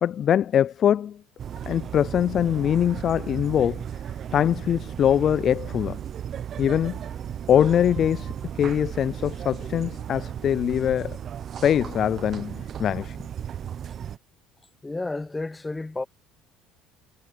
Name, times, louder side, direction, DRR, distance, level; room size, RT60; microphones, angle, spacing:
voice 1, 0.0-1.2 1.7-3.8 4.3-6.0 6.6-7.0 7.5-11.2 11.6-13.2, left 9 dB, 45° left, 0.3 m, -23 dB
sound 1, 1.4-14.2, right 9 dB, 45° right, 0.9 m, -35 dB
voice 2, 14.8-16.0, left 2 dB, 15° left, 1.0 m, -31 dB
supercardioid pair, 100°, 0 cm